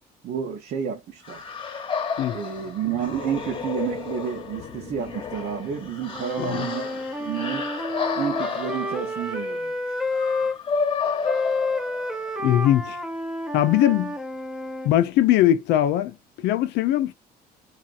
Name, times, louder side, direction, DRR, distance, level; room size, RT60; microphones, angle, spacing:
voice 1, 0.2-1.4 2.3-7.7 8.2-10.0, right 8 dB, 65° right, 0.8 m, -30 dB
sound 1, 1.2-12.3, left 5 dB, 30° left, 0.9 m, -31 dB
Wind instrument woodwind instrument, 6.1-10.6 11.2-14.9, left 2 dB, 5° right, 0.6 m, -30 dB
voice 2, 12.4-13.0 13.5-14.1 14.8-17.1, left 12 dB, 85° left, 0.5 m, -21 dB
2.8 x 2.4 x 2.4 m
cardioid pair, 110°, 17 cm